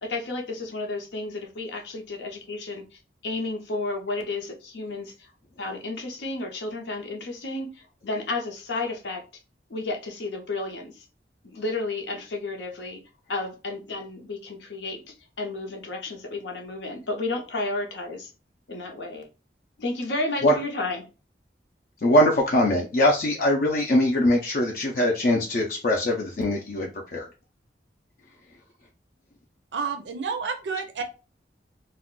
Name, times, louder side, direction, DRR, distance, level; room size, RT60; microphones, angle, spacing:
voice 1, 0.0-5.3 5.6-9.2 9.7-11.1 11.4-13.0 13.3-18.3 18.7-19.3 19.8-21.0, left 2 dB, 85° left, 2 dB, 0.7 m, -32 dB
voice 2, 22.0-27.3, left 1 dB, 50° left, 0 dB, 0.4 m, -22 dB
voice 3, 29.7-31.0, right 5 dB, 85° right, 6 dB, 0.5 m, -30 dB
2.4 x 2.2 x 3.6 m, 0.32 s
head